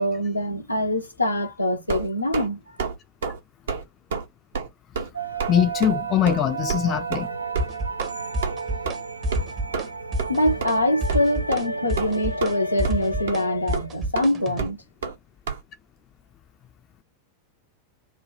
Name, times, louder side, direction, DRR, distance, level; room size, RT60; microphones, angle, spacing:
voice 1, 0.0-2.6 10.3-14.8, left 1 dB, 85° left, 0.7 m, -24 dB
sound 1, 1.9-2.5 2.8-2.9 3.2-3.4 3.7-3.8 4.1-4.2 4.5-4.7 4.9-5.1 5.4-5.5 5.8-5.9 6.3-6.4 6.7-6.8 7.1-7.3 7.5-7.7 8.0-8.1 8.4-8.5 8.8-8.9 9.3-9.5 9.7-9.9 10.2-10.3 10.6-10.7 11.1-11.2 11.5-11.7 12.0-12.5 12.8-13.0 13.3-13.4 13.7-13.9 14.1-14.3 14.6-14.7 15.0-15.1 15.5-15.6, right 5 dB, 65° right, 0.8 m, -28 dB
sound 2, 5.1-13.4, right 5 dB, 85° right, 0.4 m, -33 dB
voice 2, 5.5-7.3, left 10 dB, 30° left, 0.4 m, -22 dB
sound 3, 7.6-8.1 8.3-9.0 9.2-9.9 10.1-10.8 11.0-14.7, equal, 30° right, 0.7 m, -28 dB
3.2 x 2.2 x 4.0 m
figure-of-eight pair, 90°, 0 cm